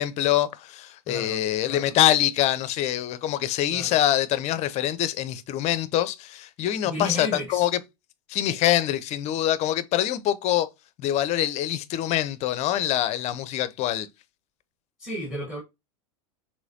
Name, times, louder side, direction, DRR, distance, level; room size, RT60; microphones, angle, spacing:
voice 1, 0.0-7.7 8.3-10.7 11.0-14.1, left 12 dB, 40° left, 0.5 m, -24 dB
voice 2, 1.1-2.0 3.7-3.9 6.8-7.7 15.0-15.6, left 1 dB, 5° right, 1.4 m, -34 dB
4.7 x 3.0 x 2.7 m
hypercardioid pair, 90°, 18 cm